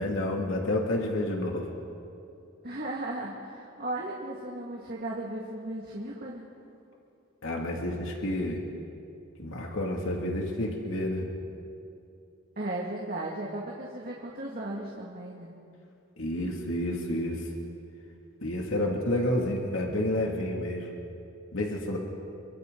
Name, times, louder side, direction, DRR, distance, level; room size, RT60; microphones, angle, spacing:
voice 1, 0.0-1.7 7.4-8.6 9.4-11.3 16.2-17.4 18.4-20.9 21.5-22.0, left 1 dB, 70° left, 0 dB, 2.5 m, -29 dB
voice 2, 2.6-6.5 12.6-15.5, right 1 dB, 45° right, -3 dB, 2.1 m, -36 dB
28.5 x 24.5 x 4.0 m, 2.6 s
head